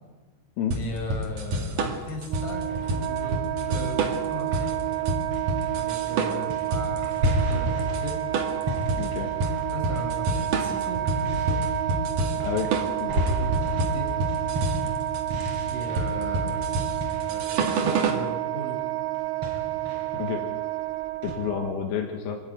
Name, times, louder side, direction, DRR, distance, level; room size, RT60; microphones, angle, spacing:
voice 1, 0.7-3.4 3.7-4.7 5.7-8.2 9.7-11.7 13.2-14.1 15.7-16.7 17.3-18.9, equal, 40° left, 1 dB, 6.0 m, -38 dB
sound 1, 0.7-18.3, right 2 dB, 50° right, 2.8 m, -28 dB
Wind instrument woodwind instrument, 2.2-21.7, right 14 dB, 80° right, 3.8 m, -30 dB
sound 2, 2.7-4.1 4.5-21.3, equal, 30° right, 5.4 m, -34 dB
voice 2, 9.0-9.3 12.4-12.7 13.0-13.3 20.1-20.5 21.2-22.4, left 8 dB, 80° left, 2 dB, 4.2 m, -30 dB
27.5 x 12.5 x 9.2 m, 1.4 s
omnidirectional pair, 5.9 m